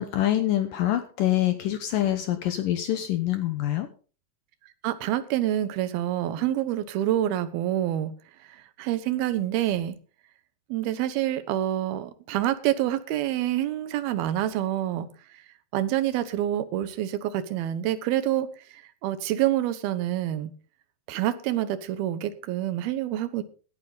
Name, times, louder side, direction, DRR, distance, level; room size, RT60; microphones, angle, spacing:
voice 1, 0.0-3.9, left 13 dB, 80° left, 9 dB, 1.9 m, -25 dB
voice 2, 4.8-8.1 8.4-10.0 10.7-15.4 15.7-20.5 21.1-23.4, right 12 dB, 70° right, 12 dB, 2.6 m, -27 dB
17.5 x 9.6 x 4.0 m, 0.37 s
omnidirectional pair, 5.3 m